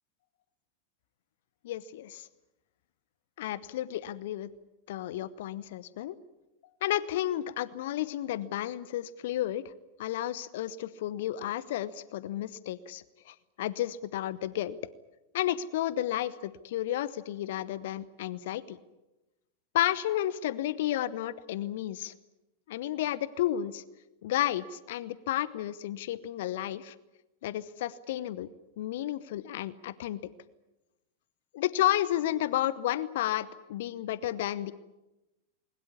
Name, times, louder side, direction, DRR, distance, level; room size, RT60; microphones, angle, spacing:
voice 1, 1.6-2.3 3.4-4.5 4.9-6.1 6.8-9.7 10.0-14.8 15.3-18.8 19.7-22.1 22.7-23.8 24.2-26.9 27.4-28.5 28.8-30.2 31.5-34.7, left 13 dB, 55° left, 18 dB, 0.9 m, -32 dB
21.0 x 20.0 x 9.6 m, 0.99 s
figure-of-eight pair, 90°, 0 cm